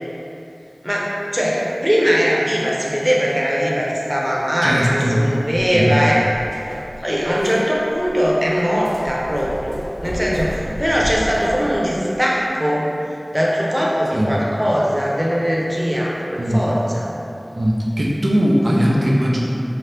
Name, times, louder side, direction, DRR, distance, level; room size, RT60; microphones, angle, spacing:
voice 1, 1.3-4.8 5.1-6.2 7.0-12.9 13.3-17.1, equal, 10° right, -4 dB, 0.7 m, -20 dB
voice 2, 4.6-5.2 5.7-6.0 10.7-10.8 14.1-14.3 16.4-16.6 17.5-19.4, equal, 85° right, -5 dB, 0.6 m, -19 dB
sound 1, 5.6-12.0, equal, 85° left, 1.0 m, -33 dB
3.8 x 2.9 x 3.3 m, 2.9 s
wide cardioid pair, 45°, 0 cm